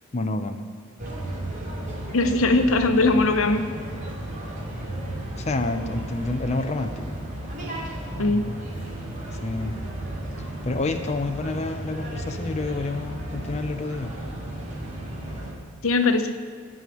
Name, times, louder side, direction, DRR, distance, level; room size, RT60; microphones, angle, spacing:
voice 1, 0.1-0.6 5.3-7.2 9.3-9.7 10.4-14.1, left 2 dB, 35° left, 6 dB, 0.6 m, -29 dB
sound 1, 1.0-15.5, right 1 dB, 40° right, 2.6 m, -34 dB
voice 2, 2.1-3.6 8.2-8.5 15.8-16.3, left 2 dB, 85° left, 8 dB, 0.9 m, -20 dB
14.5 x 4.9 x 9.2 m, 2.1 s
head